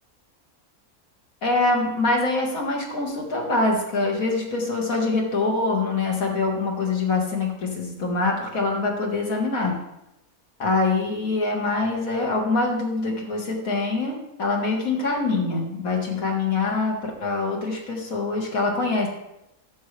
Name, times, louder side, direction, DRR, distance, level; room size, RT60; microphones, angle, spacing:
voice 1, 1.4-9.8 10.6-19.1, left 3 dB, 70° left, 0 dB, 2.0 m, -24 dB
11.0 x 7.3 x 3.3 m, 0.87 s
omnidirectional pair, 1.5 m